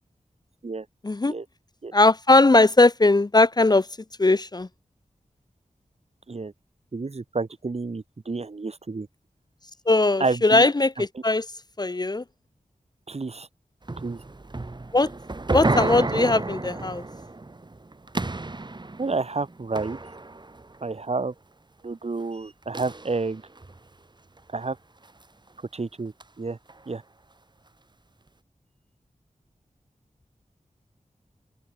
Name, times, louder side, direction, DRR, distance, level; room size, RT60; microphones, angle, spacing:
voice 1, 1.9-3.9 4.2-4.7 9.9-11.5 11.8-12.2 14.9-15.1 15.5-17.0, left 2 dB, 30° left, 0.7 m, -19 dB
voice 2, 6.9-9.1 10.2-10.7 11.0-11.1 13.1-13.5 14.0-14.2 19.0-20.0 20.8-21.3 21.8-23.4 24.5-24.8 25.7-26.6 26.9-27.0, right 3 dB, 50° right, 1.9 m, -30 dB
sound 1, 13.9-20.8 22.7-23.8 24.4-24.6 25.1-25.2 26.2-26.3 26.7-26.8, right 2 dB, 35° right, 1.8 m, -31 dB
wide cardioid pair, 75°, 14 cm